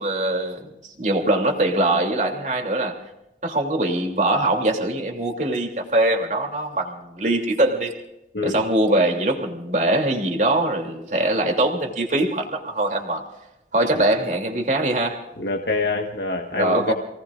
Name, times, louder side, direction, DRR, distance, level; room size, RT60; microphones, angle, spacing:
voice 1, 0.0-3.0 3.4-7.9 8.4-13.2 13.7-15.2 16.5-16.9, right 1 dB, 45° right, 2 dB, 2.9 m, -22 dB
voice 2, 15.4-16.9, left 3 dB, 70° left, 2 dB, 1.4 m, -25 dB
28.5 x 18.5 x 2.5 m, 0.90 s
head